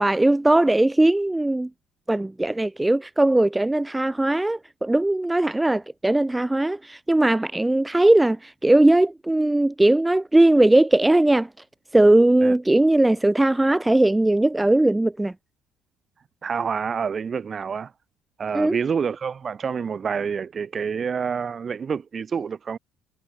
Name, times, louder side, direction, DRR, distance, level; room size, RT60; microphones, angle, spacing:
voice 1, 0.0-1.7 2.1-11.5 11.9-15.3 18.5-18.8, right 1 dB, 5° right, 0.3 m, -19 dB
voice 2, 16.4-17.9 18.4-22.8, right 6 dB, 25° right, 1.1 m, -27 dB
cardioid pair, 170°, 0 cm